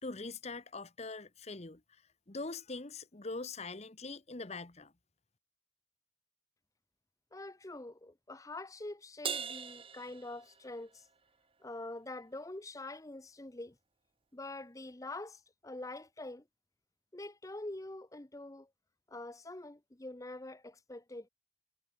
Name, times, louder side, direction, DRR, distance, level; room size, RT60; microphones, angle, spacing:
voice 1, 0.0-1.8 2.3-4.9, left 3 dB, 35° left, 1.1 m, -42 dB
voice 2, 7.3-11.1 11.6-13.8 14.3-16.4 17.1-18.7 19.1-21.3, left 2 dB, 15° left, 0.7 m, -45 dB
Crash cymbal, 9.2-11.0, right 7 dB, 30° right, 1.5 m, -40 dB
head